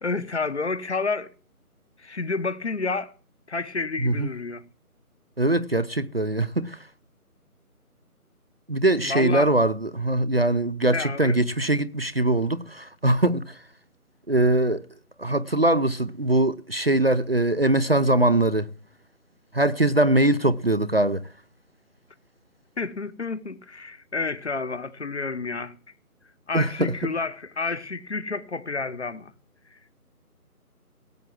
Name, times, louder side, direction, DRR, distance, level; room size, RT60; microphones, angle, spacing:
voice 1, 0.0-1.3 2.0-3.1 3.5-4.6 9.0-9.5 10.9-11.4 22.8-25.7 26.5-29.3, left 4 dB, 50° left, 1.2 m, -30 dB
voice 2, 4.0-4.3 5.4-6.8 8.7-13.6 14.3-14.8 15.2-18.7 19.5-21.2 26.5-26.9, right 1 dB, 40° right, 0.6 m, -22 dB
17.5 x 7.2 x 7.6 m
figure-of-eight pair, 165°, 45 cm